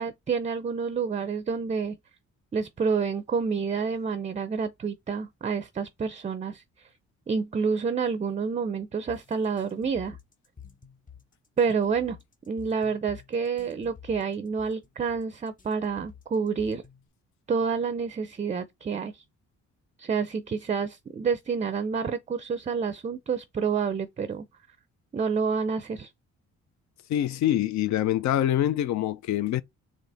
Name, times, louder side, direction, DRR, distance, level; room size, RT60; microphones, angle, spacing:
voice 1, 0.0-2.0 2.5-6.9 7.3-10.2 11.6-12.2 12.5-16.8 17.5-19.2 20.0-24.4 25.1-26.1, right 5 dB, 25° right, 0.4 m, -28 dB
sound 1, 9.1-17.1, left 7 dB, 25° left, 0.7 m, -50 dB
voice 2, 27.1-29.6, left 12 dB, 65° left, 0.5 m, -25 dB
4.0 x 3.0 x 3.4 m
cardioid pair, 90°, 30 cm